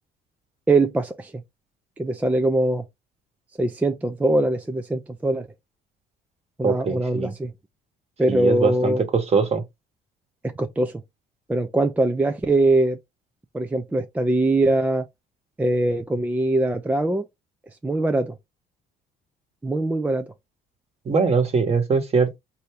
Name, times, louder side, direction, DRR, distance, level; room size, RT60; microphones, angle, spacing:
voice 1, 0.7-1.4 2.0-2.8 3.6-5.5 6.6-7.5 8.2-9.0 10.4-11.0 11.5-13.0 13.5-15.1 15.6-17.3 17.8-18.3 19.6-20.3, right 2 dB, 10° right, 0.4 m, -22 dB
voice 2, 6.6-7.3 8.3-9.6 21.0-22.4, right 5 dB, 35° right, 1.3 m, -22 dB
4.3 x 2.7 x 3.3 m
cardioid pair, 110°, 17 cm